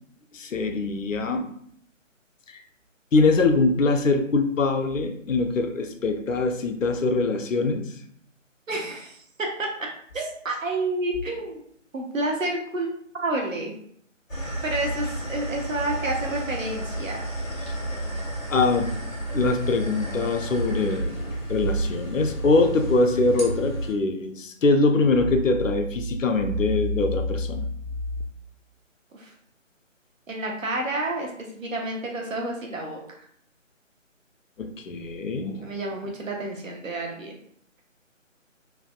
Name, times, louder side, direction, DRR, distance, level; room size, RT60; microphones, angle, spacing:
voice 1, 0.3-1.5 2.5-2.6 3.1-7.8 18.5-18.9 19.3-21.1 21.5-27.7 28.1-28.2 34.6-35.7, left 3 dB, 75° left, 6 dB, 0.5 m, -23 dB
voice 2, 8.7-9.2 9.6-9.9 10.1-11.6 11.9-12.9 13.2-13.7 14.6-17.2 29.1-29.3 30.3-33.0 35.6-37.4, right 2 dB, 75° right, 1 dB, 0.9 m, -29 dB
sound 1, 14.3-23.9, right 1 dB, 90° left, 1.2 m, -31 dB
3.3 x 2.2 x 2.3 m, 0.63 s
figure-of-eight pair, 150°, 39 cm